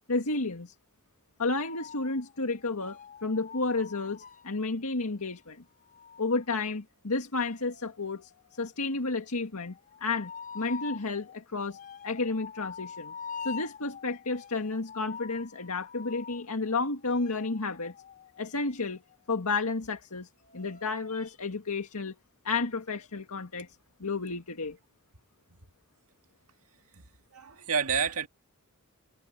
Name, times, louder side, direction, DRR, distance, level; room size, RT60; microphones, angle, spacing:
voice 1, 0.1-0.7 1.4-5.6 6.2-9.8 10.0-11.8 12.0-13.1 13.4-17.9 18.4-19.0 19.3-22.1 22.4-23.7 24.0-24.8, left 3 dB, 80° left, 1.9 m, -31 dB
sound 1, 1.5-4.6 5.9-19.8 20.4-21.3, left 6 dB, 40° left, 3.6 m, -46 dB
voice 2, 27.3-28.3, right 6 dB, 70° right, 2.1 m, -29 dB
head